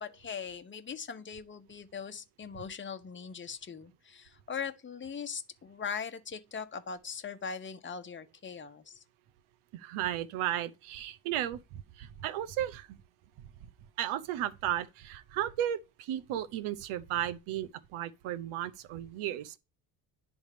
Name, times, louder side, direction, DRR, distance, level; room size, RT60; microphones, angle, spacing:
voice 1, 0.0-9.0, left 6 dB, 25° left, 1.0 m, -40 dB
voice 2, 9.7-13.0 14.0-19.6, right 12 dB, 90° right, 0.8 m, -34 dB
10.5 x 3.6 x 4.9 m
cardioid pair, 85°, 48 cm